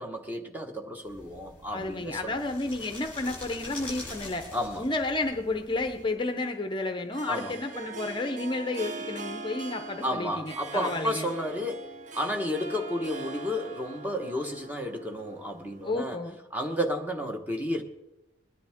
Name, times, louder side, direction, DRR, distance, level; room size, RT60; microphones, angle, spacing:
voice 1, 0.0-2.3 4.5-4.8 7.3-7.5 10.0-16.2 16.5-17.8, equal, 10° right, 3 dB, 1.1 m, -32 dB
sound 1, 1.0-6.1, left 2 dB, 5° left, 5.8 m, -44 dB
voice 2, 1.7-4.4 4.8-11.3 15.8-16.4, left 2 dB, 25° left, 6 dB, 0.6 m, -31 dB
Harp, 5.7-16.2, right 3 dB, 45° right, 0.7 m, -42 dB
21.0 x 10.5 x 3.6 m, 0.94 s
head